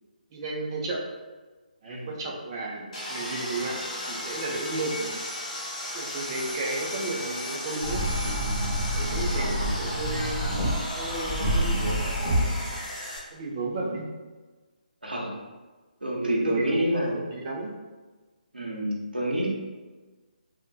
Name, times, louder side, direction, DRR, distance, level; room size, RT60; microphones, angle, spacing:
voice 1, 0.3-1.0 1.8-3.8 4.1-5.2 5.9-8.1 8.9-10.7 11.0-12.5 13.3-14.1 16.1-17.7, right 2 dB, 25° right, -2 dB, 0.4 m, -33 dB
Sawing, 2.9-13.2, left 1 dB, 50° left, 0.8 m, -35 dB
sound 1, 7.8-12.8, equal, 5° right, 0.8 m, -28 dB
voice 2, 9.3-9.7 15.0-15.4 16.0-17.2 18.5-19.5, right 1 dB, 85° right, -3 dB, 0.6 m, -28 dB
2.6 x 2.1 x 2.3 m, 1.3 s
figure-of-eight pair, 145°, 5 cm